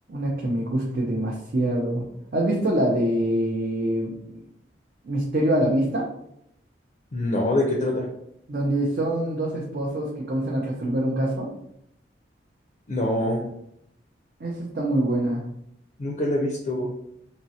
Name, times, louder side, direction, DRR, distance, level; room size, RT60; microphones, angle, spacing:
voice 1, 0.1-2.1 2.3-4.4 5.0-6.1 8.5-11.5 14.4-15.4, right 1 dB, 55° right, -3 dB, 0.5 m, -25 dB
voice 2, 7.1-8.1 12.9-13.4 16.0-16.9, left 1 dB, 40° left, -1 dB, 0.4 m, -24 dB
3.6 x 2.0 x 2.7 m, 0.75 s
head